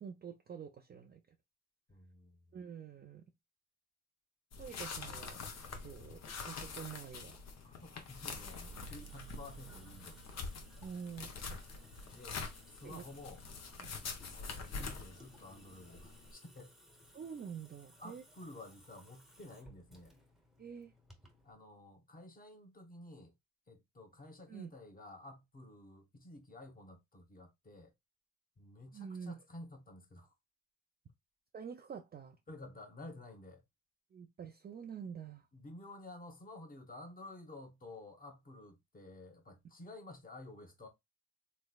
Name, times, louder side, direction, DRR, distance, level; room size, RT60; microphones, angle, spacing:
voice 1, 0.0-1.2 2.5-3.2 4.6-5.4 5.8-7.4 10.8-11.9 12.8-13.0 13.8-14.0 17.1-18.2 20.6-20.9 24.5-24.7 28.9-29.4 31.5-32.4 34.1-35.5, right 7 dB, 30° right, 0.5 m, -47 dB
voice 2, 1.9-2.6 7.6-10.4 12.1-12.4 12.7-13.4 14.3-16.7 18.0-20.1 21.4-23.3 23.7-27.9 28.6-30.3 32.5-33.6 35.5-40.9, left 2 dB, 30° left, 1.1 m, -52 dB
sound 1, 4.5-16.3, left 4 dB, 60° left, 0.8 m, -46 dB
Water tap faucet / Sink (filling or washing) / Drip, 5.6-21.5, equal, ahead, 0.9 m, -62 dB
sound 2, 8.4-11.7, right 9 dB, 80° right, 1.1 m, -56 dB
3.3 x 3.1 x 2.2 m
cardioid pair, 90°, 30 cm